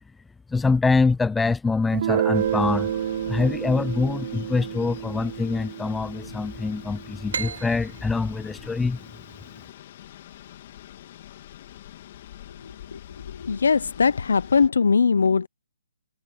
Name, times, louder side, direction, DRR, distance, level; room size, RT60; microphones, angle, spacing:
voice 1, 0.5-2.9 3.3-9.1, left 4 dB, 5° left, 0.8 m, -24 dB
Guitar, 1.9-7.4, right 10 dB, 45° right, 0.7 m, -29 dB
sound 1, 2.3-14.7, left 12 dB, 40° left, 3.0 m, -44 dB
sound 2, 7.3-10.7, right 6 dB, 65° right, 5.0 m, -37 dB
voice 2, 13.3-15.5, left 5 dB, 70° left, 0.9 m, -20 dB
hypercardioid pair, 150°, 0 cm